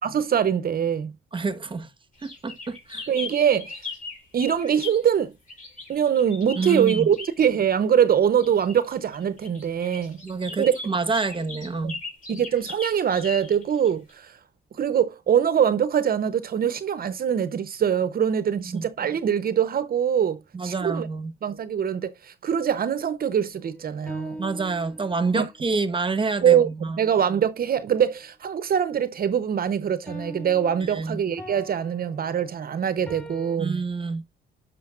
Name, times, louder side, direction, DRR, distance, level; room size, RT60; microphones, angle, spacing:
voice 1, 0.0-1.1 3.1-3.8 4.3-5.3 5.9-10.2 10.6-10.7 11.8-12.0 12.3-14.4 14.7-21.1 21.4-24.4 25.3-25.5 26.4-26.7 27.0-33.8, right 8 dB, 50° right, 0.7 m, -23 dB
voice 2, 1.3-1.9 2.2-3.1 6.6-7.1 10.2-12.0 18.7-18.8 20.5-21.3 24.4-27.0 30.8-31.2 33.6-34.2, right 4 dB, 25° right, 1.1 m, -28 dB
sound 1, 2.2-5.1 5.5-7.5 8.4-14.1, left 3 dB, 40° left, 4.3 m, -38 dB
sound 2, 23.6-25.5 30.1-33.6, equal, 5° left, 4.7 m, -42 dB
10.5 x 5.2 x 2.4 m
cardioid pair, 90°, 20 cm